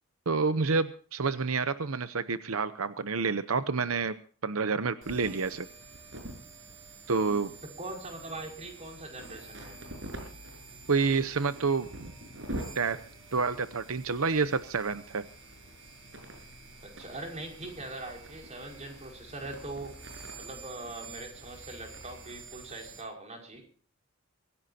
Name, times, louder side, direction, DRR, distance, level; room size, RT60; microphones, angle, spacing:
voice 1, 0.3-5.7 7.1-7.5 10.9-12.1 12.8-13.0 13.3-15.2, right 4 dB, 85° right, 12 dB, 0.8 m, -29 dB
sound 1, 5.0-23.0, right 2 dB, 65° right, 6.5 m, -46 dB
voice 2, 7.2-9.8 16.8-20.0 20.4-23.6, right 2 dB, 35° right, 1 dB, 5.5 m, -42 dB
24.5 x 16.5 x 2.8 m, 0.43 s
head